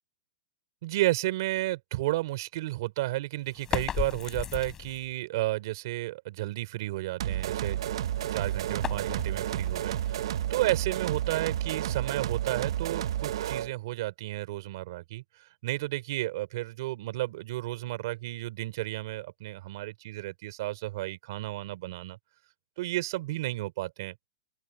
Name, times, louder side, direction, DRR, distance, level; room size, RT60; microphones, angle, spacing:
voice 1, 0.8-7.8 8.3-15.2 15.6-22.2 22.8-24.1, right 17 dB, 40° right, 3.1 m, -32 dB
sound 1, 3.5-5.1 7.8-10.8, left 9 dB, 15° left, 4.0 m, -37 dB
sound 2, 7.2-13.7, right 11 dB, 60° right, 0.7 m, -31 dB
open air
supercardioid pair, 180°, 3 cm